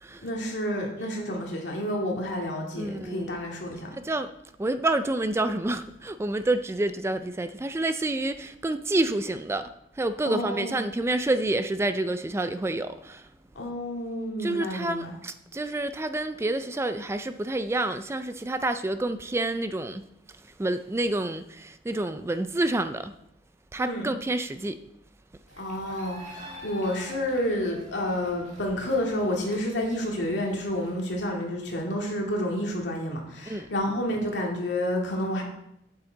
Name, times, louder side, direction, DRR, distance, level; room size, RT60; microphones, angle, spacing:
voice 1, 0.2-4.0 10.3-10.8 13.6-15.1 23.8-24.1 25.6-35.4, left 1 dB, 75° left, -1 dB, 2.2 m, -30 dB
voice 2, 2.8-3.4 3.9-4.3 4.6-9.6 10.0-13.3 14.4-20.0 20.6-23.1 23.7-24.8 33.5-33.7, right 2 dB, 15° right, 10 dB, 0.3 m, -28 dB
sound 1, 25.5-31.1, right 1 dB, 40° right, 1.9 m, -47 dB
8.6 x 7.8 x 3.9 m, 0.79 s
head